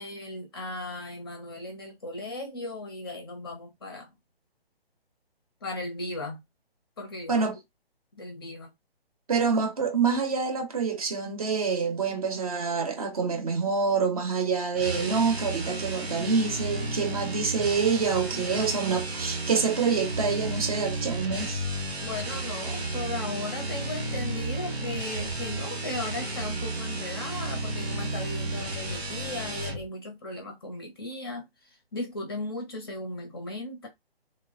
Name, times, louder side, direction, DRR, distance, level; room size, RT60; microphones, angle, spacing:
voice 1, 0.0-4.1 5.6-6.4 7.0-7.5 8.1-8.7 22.0-33.9, left 2 dB, 25° left, 0.6 m, -37 dB
voice 2, 9.3-21.7, right 5 dB, 35° right, 0.7 m, -26 dB
sound 1, 14.7-29.9, right 2 dB, 90° right, 0.9 m, -33 dB
3.2 x 2.1 x 2.4 m
figure-of-eight pair, 140°, 31 cm